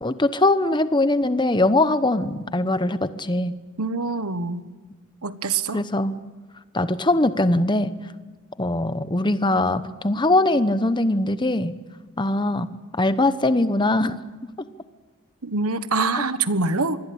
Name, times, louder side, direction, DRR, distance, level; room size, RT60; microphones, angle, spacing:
voice 1, 0.0-3.6 5.7-6.1 6.7-7.9 8.6-11.7 12.2-14.2 16.1-16.2, left 2 dB, 20° left, 12 dB, 1.0 m, -21 dB
voice 2, 3.8-4.7 5.2-5.8 15.4-17.0, right 3 dB, 90° right, 12 dB, 1.4 m, -25 dB
25.5 x 20.5 x 8.7 m, 1.3 s
head